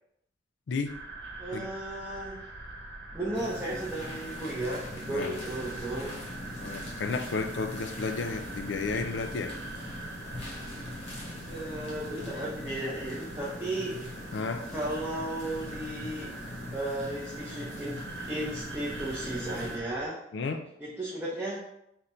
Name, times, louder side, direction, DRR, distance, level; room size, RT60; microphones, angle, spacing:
sound 1, 0.9-20.1, right 2 dB, 65° right, 0.9 m, -43 dB
voice 1, 1.4-2.4 3.1-6.1 11.5-14.0 14.7-16.4 16.7-20.2 20.8-21.6, right 1 dB, 15° right, -7 dB, 0.6 m, -35 dB
sound 2, 3.3-19.8, left 1 dB, 35° left, 1.0 m, -42 dB
voice 2, 6.6-9.5 14.3-14.7 20.3-20.7, left 4 dB, 70° left, 7 dB, 0.4 m, -32 dB
3.8 x 2.1 x 4.2 m, 0.79 s
head